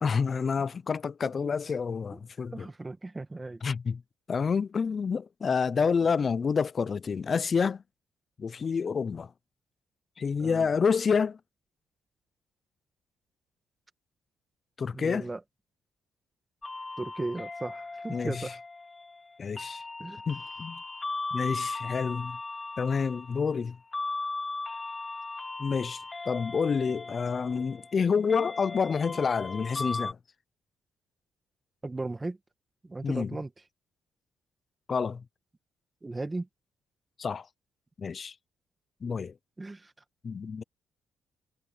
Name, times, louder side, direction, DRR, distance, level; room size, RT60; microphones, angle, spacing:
voice 1, 0.0-2.7 3.6-4.0 4.3-7.8 8.4-9.3 10.2-11.4 14.8-15.3 18.1-18.3 19.4-19.8 20.3-20.8 21.3-22.4 22.8-23.8 25.6-26.0 26.3-30.2 33.0-33.3 34.9-35.2 37.2-37.4 38.0-38.3 39.0-39.3 40.2-40.6, left 5 dB, 40° left, 0.5 m, -28 dB
voice 2, 2.5-3.6 6.0-6.1 10.4-10.7 14.9-15.4 17.0-18.6 20.0-20.2 31.8-32.4 32.8-33.5 36.0-36.5 39.6-39.9, right 2 dB, 20° right, 1.9 m, -36 dB
sound 1, 16.6-30.1, left 3 dB, 25° left, 1.6 m, -38 dB
cardioid pair, 90°, 0 cm